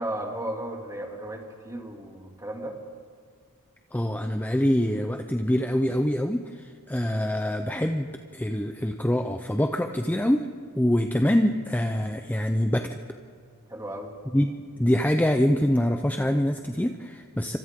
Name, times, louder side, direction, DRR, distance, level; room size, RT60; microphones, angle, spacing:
voice 1, 0.0-2.8 13.7-14.1, right 1 dB, 15° right, 1 dB, 2.7 m, -34 dB
voice 2, 3.9-10.5 10.7-13.0 14.3-17.6, equal, 10° left, 5 dB, 0.7 m, -25 dB
27.5 x 25.0 x 3.8 m, 2.1 s
head